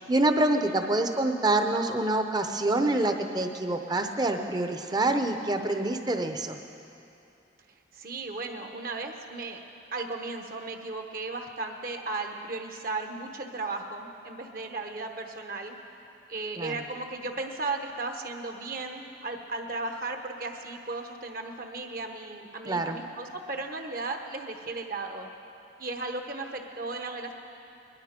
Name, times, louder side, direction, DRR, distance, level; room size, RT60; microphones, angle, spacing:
voice 1, 0.0-6.6 16.6-16.7 22.6-23.0, right 2 dB, 20° right, 6 dB, 0.8 m, -26 dB
voice 2, 7.9-9.6 9.9-15.8 16.3-25.3 25.8-27.3, right 3 dB, 50° right, 4 dB, 1.1 m, -35 dB
20.5 x 13.0 x 5.2 m, 2.7 s
head